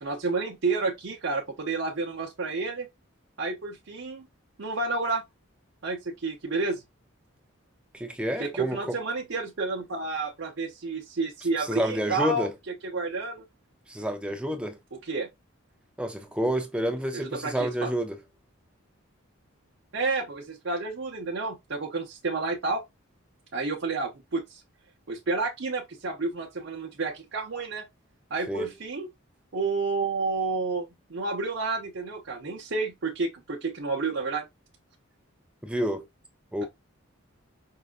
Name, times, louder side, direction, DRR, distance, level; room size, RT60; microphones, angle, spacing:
voice 1, 0.0-2.9 3.4-4.3 4.6-5.2 5.8-6.8 8.4-13.4 15.0-15.3 17.1-17.9 19.9-22.8 23.5-24.6 25.1-27.9 28.3-29.1 29.5-34.4, right 3 dB, 60° right, 0.7 m, -30 dB
voice 2, 7.9-9.0 11.6-12.5 13.9-14.8 16.0-18.2 28.5-28.7 35.6-36.1 36.5-36.6, equal, 5° right, 0.4 m, -29 dB
5.4 x 2.3 x 2.4 m
head